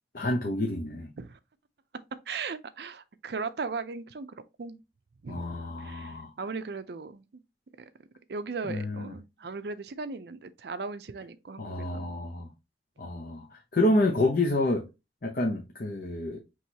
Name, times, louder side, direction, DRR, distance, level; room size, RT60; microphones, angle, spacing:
voice 1, 0.1-1.1 5.3-6.3 8.7-9.1 11.6-12.5 13.0-14.9 15.2-16.4, left 1 dB, 50° left, 0.7 m, -28 dB
voice 2, 2.3-4.8 5.2-7.4 7.8-7.9 8.3-12.1, right 4 dB, 60° right, 0.5 m, -38 dB
6.1 x 3.1 x 2.8 m
head